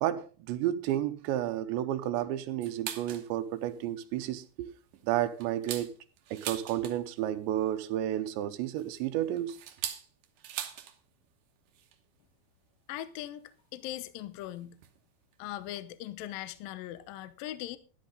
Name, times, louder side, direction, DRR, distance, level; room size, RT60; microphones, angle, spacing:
voice 1, 0.0-4.7 5.0-5.9 6.3-9.6, right 12 dB, 85° right, 3.0 m, -31 dB
sound 1, 2.6-3.3 3.7-3.8 4.2-4.5 4.9-7.2 8.4-11.0 11.2-11.3 11.7-12.0 12.9-13.0 13.9-14.0 14.8-15.0 15.3-15.4 15.6-15.8, right 10 dB, 65° right, 2.1 m, -41 dB
voice 2, 12.9-13.4 13.7-14.8 15.4-17.8, left 13 dB, 80° left, 2.1 m, -40 dB
12.5 x 12.0 x 3.8 m
omnidirectional pair, 5.1 m